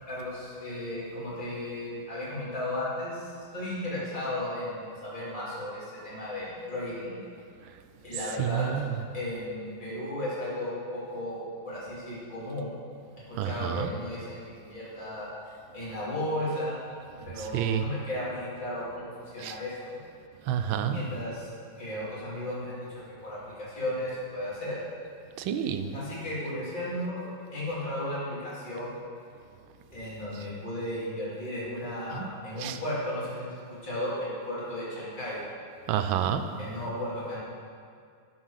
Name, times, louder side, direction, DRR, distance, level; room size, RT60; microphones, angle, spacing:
voice 1, 0.1-7.2 8.0-8.7 9.1-12.8 13.3-16.8 17.2-20.0 20.9-21.5 21.8-24.8 25.9-29.0 29.9-35.4 36.5-37.4, left 1 dB, 20° left, -9 dB, 3.0 m, -35 dB
voice 2, 8.4-8.9 13.4-13.9 17.5-17.8 19.4-19.5 20.5-21.0 25.4-25.9 32.1-32.3 32.6-32.8 35.9-36.4, right 9 dB, 75° right, 8 dB, 1.4 m, -29 dB
11.5 x 5.5 x 6.4 m, 2.2 s
omnidirectional pair, 2.3 m